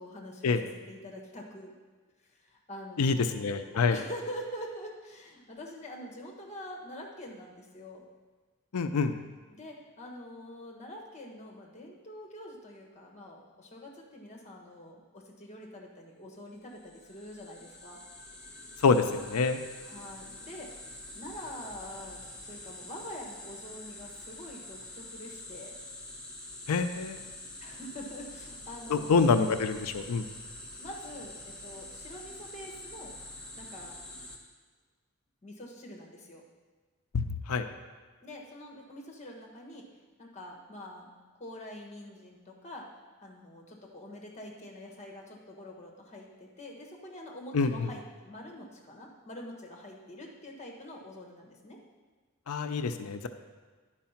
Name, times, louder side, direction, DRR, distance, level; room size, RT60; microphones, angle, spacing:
voice 1, 0.0-1.7 2.4-8.0 9.5-18.0 19.8-20.8 21.1-25.8 27.6-29.5 30.8-33.1 33.5-34.0 35.4-36.4 38.2-39.9 40.2-42.9 43.2-51.8, left 1 dB, 30° left, 0 dB, 1.3 m, -45 dB
voice 2, 3.0-4.0 8.7-9.1 18.8-19.6 26.7-27.2 28.9-30.3 37.1-37.7 47.5-47.9 52.5-53.3, left 4 dB, 90° left, 8 dB, 0.5 m, -26 dB
sound 1, 16.6-34.4, left 1 dB, 5° left, 1.0 m, -46 dB
10.5 x 4.8 x 5.7 m, 1.4 s
head